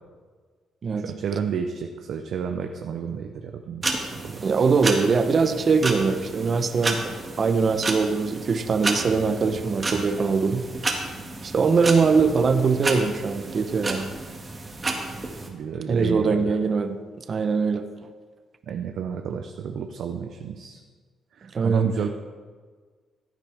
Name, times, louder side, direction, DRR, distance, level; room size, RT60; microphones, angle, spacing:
voice 1, 0.9-4.4 15.5-16.5 18.7-20.8 21.3-22.1, right 7 dB, 70° right, 5 dB, 0.7 m, -31 dB
sound 1, 3.8-15.5, right 3 dB, 30° right, 1.9 m, -32 dB
voice 2, 4.4-7.0 7.4-10.6 11.4-14.1 15.9-17.0 17.3-17.8 21.5-21.9, right 5 dB, 45° right, 8 dB, 0.8 m, -22 dB
15.0 x 9.3 x 3.5 m, 1.5 s
cardioid pair, 90°, 0 cm